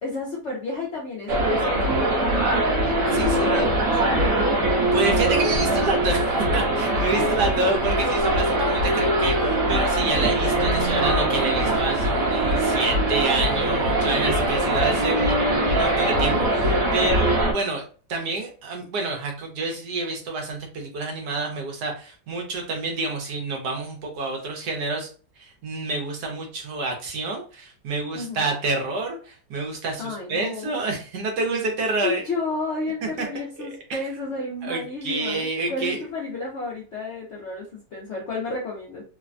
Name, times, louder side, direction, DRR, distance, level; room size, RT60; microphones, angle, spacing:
voice 1, 0.0-2.8 3.1-4.5 7.1-7.3 7.6-7.7 14.4-14.9 16.9-17.4 28.1-28.5 30.0-30.7 32.0-39.0, left 3 dB, 65° left, -3 dB, 0.7 m, -32 dB
sound 1, 1.3-17.5, right 1 dB, 55° right, 1.1 m, -22 dB
voice 2, 3.1-3.7 4.9-15.3 15.6-17.8 18.1-25.1 25.4-32.2 33.2-33.3 33.6-34.0 34.6-36.0, right 3 dB, 70° right, 2 dB, 1.2 m, -28 dB
3.2 x 2.1 x 2.4 m, 0.38 s
omnidirectional pair, 1.9 m